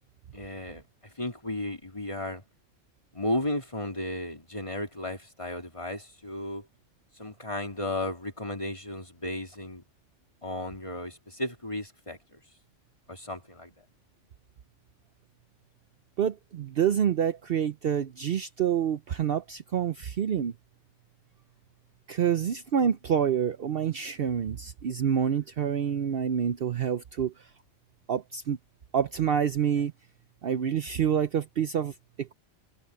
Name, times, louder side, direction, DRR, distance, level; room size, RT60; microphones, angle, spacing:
voice 1, 0.3-0.8 1.2-2.4 3.1-6.6 7.2-9.8 10.4-12.4 13.1-13.7, left 1 dB, 25° left, 3.4 m, -34 dB
voice 2, 16.2-20.5 22.1-27.3 28.1-28.6 28.9-29.9 30.4-32.3, right 8 dB, 55° right, 0.8 m, -27 dB
omnidirectional pair, 1.2 m